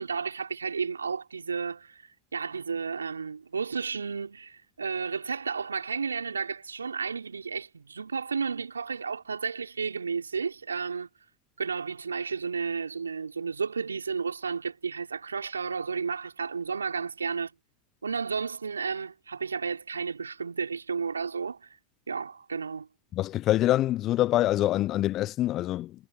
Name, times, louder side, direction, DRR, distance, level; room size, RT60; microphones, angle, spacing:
voice 1, 0.0-11.1 11.6-17.5 18.0-21.8 22.1-22.9, right 5 dB, 85° right, 5.2 m, -32 dB
voice 2, 23.1-25.9, left 14 dB, 40° left, 0.6 m, -25 dB
figure-of-eight pair, 85°, 0 cm